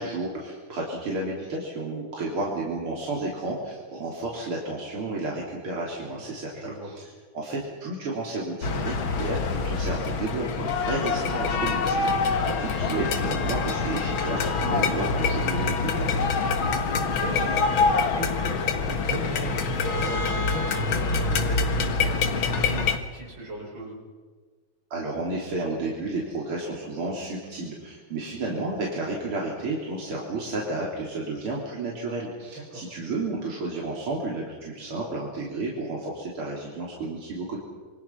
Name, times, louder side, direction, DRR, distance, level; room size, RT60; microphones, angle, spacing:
voice 1, 0.0-7.1 7.3-16.2 24.9-37.6, right 2 dB, 85° right, -3 dB, 4.2 m, -32 dB
voice 2, 6.5-6.9 12.3-12.7 16.8-24.0 32.5-32.8, right 1 dB, 65° right, -2 dB, 7.2 m, -37 dB
sound 1, 8.6-23.0, left 4 dB, 75° left, 2.3 m, -25 dB
27.5 x 24.0 x 5.9 m, 1.4 s
omnidirectional pair, 2.3 m